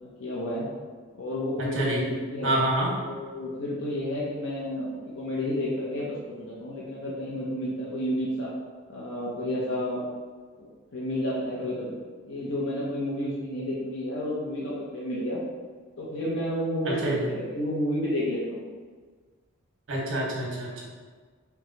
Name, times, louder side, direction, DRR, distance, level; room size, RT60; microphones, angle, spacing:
voice 1, 0.0-0.7 1.2-2.5 3.0-8.5 8.9-10.0 10.6-11.9 12.3-15.4 16.0-18.6, left 1 dB, 70° left, -6 dB, 0.7 m, -31 dB
voice 2, 2.4-2.9 17.0-17.2 19.9-20.9, right 1 dB, 70° right, -4 dB, 1.2 m, -26 dB
4.6 x 2.3 x 3.9 m, 1.5 s
head